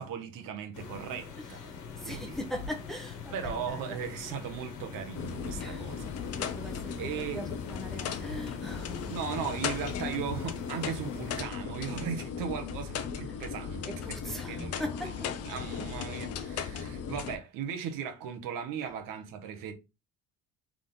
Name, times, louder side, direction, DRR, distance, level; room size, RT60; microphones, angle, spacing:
voice 1, 0.0-1.7 2.0-2.4 3.3-6.1 7.0-7.5 9.0-15.1 15.4-19.7, right 7 dB, 80° right, 1.0 m, -37 dB
sound 1, 0.7-11.4, left 5 dB, 65° left, 1.3 m, -43 dB
voice 2, 2.0-3.8 5.6-5.8 6.3-6.9 7.3-9.2 13.3-13.4 13.8-15.3, left 1 dB, ahead, 0.7 m, -40 dB
sound 2, 5.2-17.4, left 7 dB, 50° left, 0.6 m, -37 dB
3.7 x 3.5 x 3.8 m
cardioid pair, 170°, 32 cm